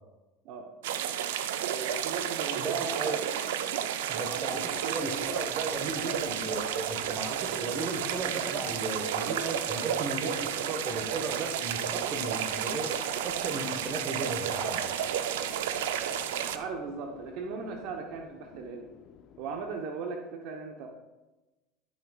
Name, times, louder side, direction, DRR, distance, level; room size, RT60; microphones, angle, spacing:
sound 1, 0.8-16.6, right 9 dB, 85° right, 0.5 m, -32 dB
voice 1, 1.7-3.5 4.3-5.3 16.4-18.9 19.4-20.9, right 4 dB, 65° right, 3 dB, 0.9 m, -39 dB
voice 2, 2.6-3.2 4.1-12.9 13.2-14.8, right 2 dB, 40° right, 5 dB, 1.3 m, -36 dB
sound 2, 4.5-19.8, left 9 dB, 55° left, 0.6 m, -50 dB
12.5 x 6.3 x 2.4 m, 1.1 s
supercardioid pair, 100°, 0 cm